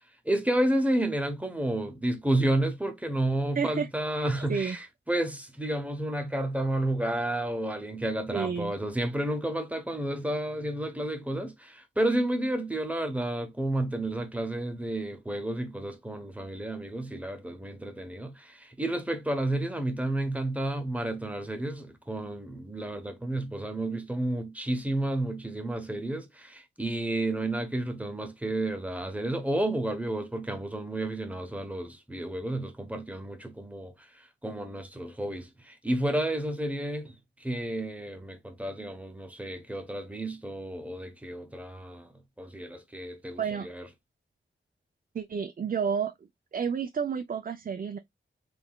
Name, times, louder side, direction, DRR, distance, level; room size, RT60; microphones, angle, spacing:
voice 1, 0.2-42.1 42.4-43.8, right 1 dB, 5° right, 1.0 m, -31 dB
voice 2, 3.6-3.9 4.2-4.8 8.3-8.8 43.4-43.7 45.1-46.1 46.5-48.0, right 6 dB, 40° right, 0.5 m, -30 dB
3.6 x 3.5 x 2.3 m
wide cardioid pair, 85°, 21 cm